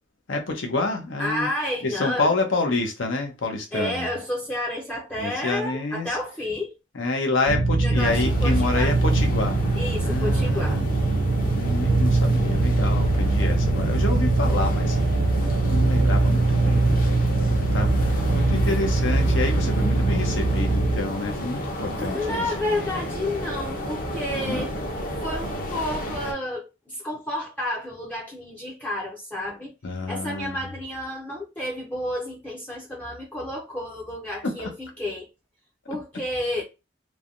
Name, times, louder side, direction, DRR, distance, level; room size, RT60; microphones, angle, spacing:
voice 1, 0.3-1.5 1.8-4.1 5.2-6.2 6.9-9.6 10.0-10.9 11.5-15.0 15.4-17.0 17.5-22.4 24.4-24.7 29.8-30.7 34.4-34.7, left 2 dB, 85° left, 0.8 m, -28 dB
voice 2, 1.2-2.3 3.7-6.7 7.8-9.0 9.8-10.8 22.0-24.7 25.2-29.7 30.1-35.3 35.9-36.6, left 1 dB, 10° left, 0.5 m, -30 dB
sound 1, 7.5-21.0, right 2 dB, 70° right, 0.4 m, -22 dB
sound 2, 7.9-26.3, equal, 45° left, 0.7 m, -32 dB
3.3 x 2.2 x 2.5 m
head